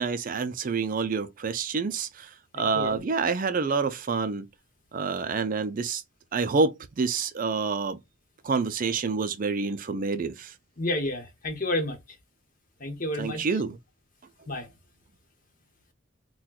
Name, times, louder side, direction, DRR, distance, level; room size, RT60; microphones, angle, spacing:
voice 1, 0.0-2.3 2.6-4.4 4.9-6.0 6.3-8.0 8.4-10.5 13.2-13.8, right 4 dB, 40° right, 0.4 m, -27 dB
voice 2, 2.5-3.0 10.8-12.0 12.8-13.6 14.5-14.7, left 1 dB, 40° left, 1.0 m, -30 dB
4.2 x 2.2 x 2.3 m
head